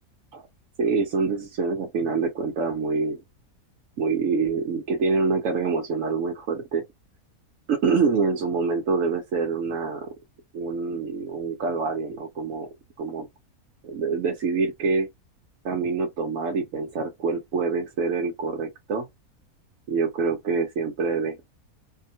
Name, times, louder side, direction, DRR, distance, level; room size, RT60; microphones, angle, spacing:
voice 1, 0.8-3.2 4.0-6.8 7.7-10.1 10.5-12.7 13.0-13.3 13.8-15.1 15.6-19.1 19.9-21.4, right 4 dB, 70° right, 1.0 m, -26 dB
2.8 x 2.1 x 2.6 m
omnidirectional pair, 1.5 m